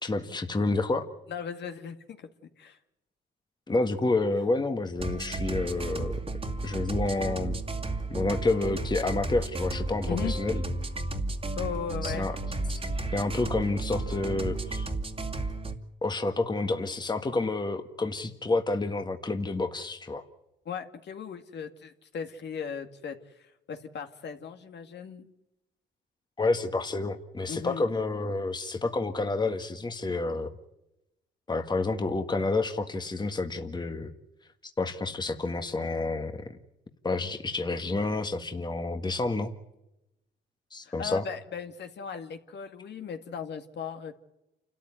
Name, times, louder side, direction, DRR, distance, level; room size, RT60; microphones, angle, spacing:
voice 1, 0.0-1.1 3.7-6.2 6.6-7.6 8.1-10.6 12.0-12.4 12.7-12.8 13.1-14.9 16.0-20.2 26.4-30.5 31.5-34.1 34.8-36.6 37.0-39.5 40.7-41.2, left 3 dB, 20° left, 7 dB, 1.7 m, -29 dB
voice 2, 1.3-2.3 2.6-2.8 10.1-10.3 11.6-12.3 20.7-25.3 27.5-27.8 40.8-44.2, left 7 dB, 60° left, 6 dB, 2.2 m, -37 dB
sound 1, 5.0-15.7, right 2 dB, 30° right, 2.3 m, -33 dB
28.5 x 13.5 x 9.4 m, 0.92 s
cardioid pair, 90°, 20 cm